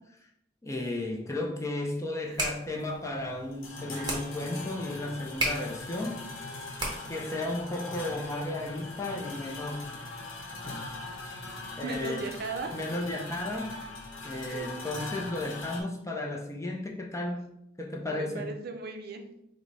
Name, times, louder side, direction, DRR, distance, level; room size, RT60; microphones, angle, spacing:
voice 1, 0.6-6.3 7.1-9.9 10.7-10.8 11.8-12.3 12.7-13.7 14.2-18.5, left 2 dB, 15° left, 1 dB, 0.5 m, -34 dB
sound 1, 2.1-7.3, right 1 dB, 20° right, 0.9 m, -36 dB
sound 2, 2.6-15.8, left 2 dB, 90° left, 0.8 m, -41 dB
voice 2, 11.8-12.7 14.4-14.7 18.1-19.3, right 3 dB, 55° right, 5 dB, 0.5 m, -37 dB
4.7 x 2.1 x 3.9 m, 0.79 s
head